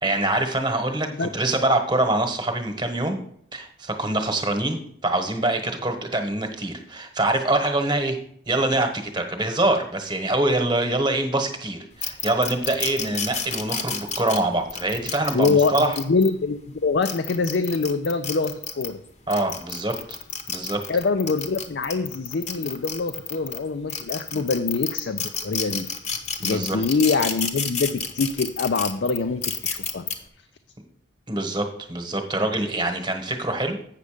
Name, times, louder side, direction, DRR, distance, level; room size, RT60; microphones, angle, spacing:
voice 1, 0.0-3.2 3.5-8.2 8.5-16.0 19.3-20.2 20.5-20.8 24.3-24.4 26.4-26.8 31.3-33.8, right 2 dB, 25° right, 5 dB, 1.2 m, -24 dB
sound 1, 12.0-16.3 16.9-18.9 19.3-23.6 23.9-30.1, left 6 dB, 35° left, 0.9 m, -30 dB
voice 2, 15.3-19.0 20.9-25.9 26.4-30.0, left 4 dB, 65° left, 8 dB, 0.5 m, -24 dB
8.3 x 6.5 x 5.0 m, 0.65 s
head